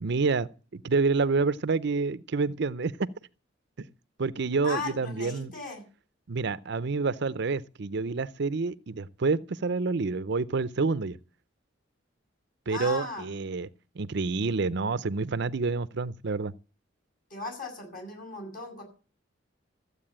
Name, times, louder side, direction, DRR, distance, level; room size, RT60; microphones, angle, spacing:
voice 1, 0.0-3.1 4.2-5.5 6.3-11.2 12.7-13.7 14.0-16.5, right 4 dB, 60° right, 0.6 m, -28 dB
voice 2, 4.6-5.8 12.7-13.3 17.3-18.8, left 2 dB, 50° left, 7.3 m, -37 dB
14.5 x 8.3 x 8.7 m
head